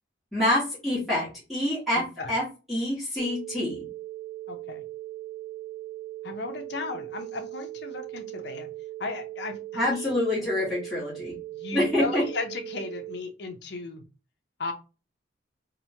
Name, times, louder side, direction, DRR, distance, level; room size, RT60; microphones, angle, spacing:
voice 1, 0.3-2.4 2.7-3.8 9.7-11.3 11.7-12.2, left 1 dB, ahead, -8 dB, 1.1 m, -26 dB
voice 2, 2.0-2.3 4.5-4.8 6.2-8.7 9.0-10.2 11.5-14.0 14.6-14.7, left 3 dB, 55° left, 5 dB, 0.5 m, -35 dB
sound 1, 3.2-13.2, right 15 dB, 20° left, 0.7 m, -39 dB
2.9 x 2.1 x 2.7 m, 0.31 s
head